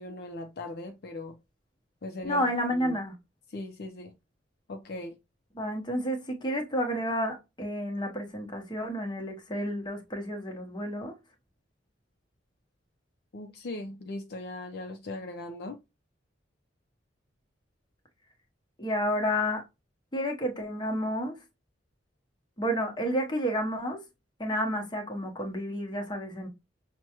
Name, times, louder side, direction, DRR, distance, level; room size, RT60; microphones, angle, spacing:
voice 1, 0.0-1.3 2.0-2.4 2.7-3.0 3.5-4.1 4.7-5.1 13.3-15.8, left 2 dB, 60° left, 0.5 m, -39 dB
voice 2, 2.2-3.1 5.5-11.1 18.8-19.6 20.1-21.4 22.6-24.0 24.4-26.5, equal, 25° left, 0.9 m, -30 dB
6.0 x 2.2 x 2.9 m
head